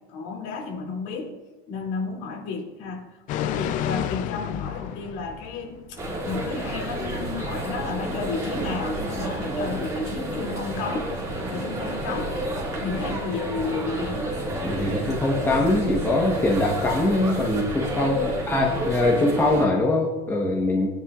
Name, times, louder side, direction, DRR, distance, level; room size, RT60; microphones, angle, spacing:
voice 1, 0.1-1.3 1.7-3.1 3.3-11.1 11.5-12.5 12.7-14.2 17.9-18.4, left 4 dB, 65° left, 0 dB, 2.8 m, -32 dB
sound 1, 3.3-6.2 6.5-6.6, left 11 dB, 40° left, 0.5 m, -30 dB
sound 2, 6.0-19.7, right 1 dB, 15° right, 2.2 m, -30 dB
voice 2, 14.6-18.2 18.5-20.9, left 2 dB, 10° left, -2 dB, 1.1 m, -22 dB
19.5 x 10.0 x 2.5 m, 1.1 s
cardioid pair, 170°, 20 cm